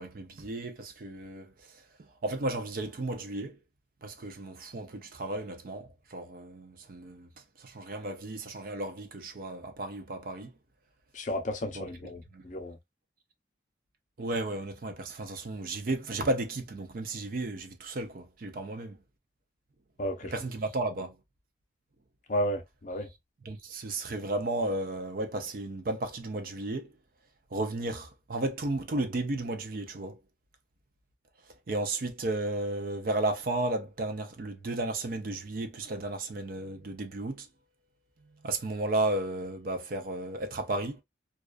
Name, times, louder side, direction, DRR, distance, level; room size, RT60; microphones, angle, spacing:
voice 1, 0.0-3.6 4.0-7.3 7.6-10.5 11.7-11.9 12.3-12.5 14.2-19.0 20.2-21.2 23.5-26.9 27.5-30.2 31.7-37.5 38.4-41.0, right 2 dB, 50° right, 0.4 m, -34 dB
voice 2, 11.1-12.8 20.0-20.3 22.3-23.1, equal, 40° left, 0.5 m, -33 dB
2.3 x 2.3 x 2.3 m
head